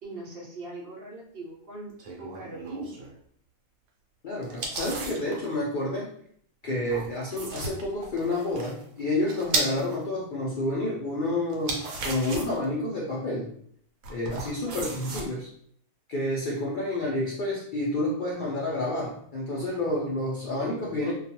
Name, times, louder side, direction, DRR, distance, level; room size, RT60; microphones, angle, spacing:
voice 1, 0.0-3.0 14.4-14.9, right 2 dB, 55° right, -3 dB, 0.7 m, -41 dB
sound 1, 2.0-3.1 4.4-5.4 6.8-9.9 11.5-12.6 14.0-15.3, right 3 dB, 75° right, 1.0 m, -34 dB
voice 2, 4.2-6.1 6.6-13.5 14.1-15.5 16.1-21.1, left 1 dB, 85° left, -4 dB, 0.4 m, -29 dB
2.3 x 2.3 x 2.7 m, 0.63 s
omnidirectional pair, 1.5 m